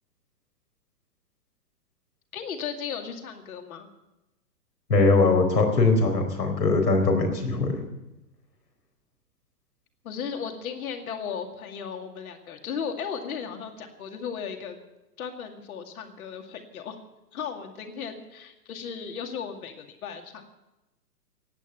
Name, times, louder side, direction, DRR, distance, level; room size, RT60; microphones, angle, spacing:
voice 1, 2.3-3.9 10.0-14.8 15.2-17.0 17.3-20.5, left 7 dB, 60° left, 5 dB, 2.3 m, -36 dB
voice 2, 4.9-7.7, left 3 dB, 85° left, 3 dB, 4.5 m, -21 dB
16.5 x 9.2 x 8.6 m, 0.97 s
hypercardioid pair, 130°, 48 cm